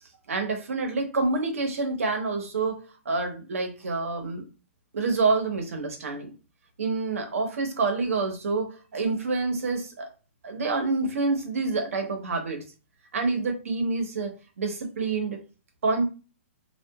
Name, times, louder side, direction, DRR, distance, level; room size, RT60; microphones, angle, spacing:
voice 1, 0.3-4.4 4.9-6.3 6.8-10.1 10.4-12.6 13.1-15.4 15.8-16.0, right 3 dB, 80° right, 4 dB, 0.8 m, -27 dB
2.8 x 2.3 x 2.3 m, 0.33 s
hypercardioid pair, 180°, 7 cm